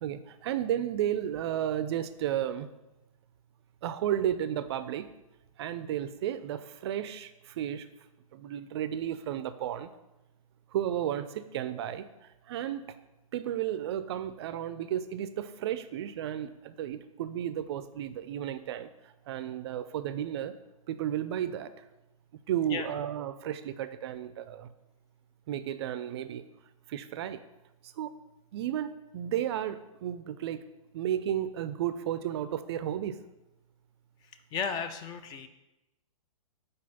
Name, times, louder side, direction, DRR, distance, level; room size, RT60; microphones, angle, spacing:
voice 1, 0.0-2.7 3.8-5.1 5.6-7.9 8.3-9.9 10.7-13.0 13.3-20.5 20.9-21.7 22.5-24.7 25.5-26.4 26.9-27.4 27.8-28.1 28.5-30.6 30.9-33.2, right 10 dB, 50° right, 12 dB, 0.4 m, -33 dB
voice 2, 34.5-35.5, left 6 dB, 25° left, 9 dB, 0.4 m, -34 dB
5.3 x 4.2 x 5.3 m, 0.98 s
hypercardioid pair, 120°, 18 cm